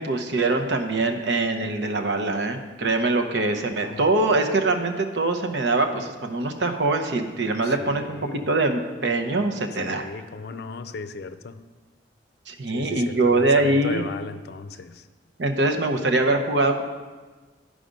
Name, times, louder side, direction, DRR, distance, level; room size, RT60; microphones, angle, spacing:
voice 1, 0.0-10.1 12.5-14.0 15.4-16.8, right 2 dB, 70° right, 5 dB, 0.8 m, -23 dB
voice 2, 3.8-4.1 7.6-8.5 9.8-11.6 12.7-15.1, left 4 dB, 65° left, 11 dB, 0.5 m, -37 dB
11.5 x 5.0 x 5.2 m, 1.3 s
head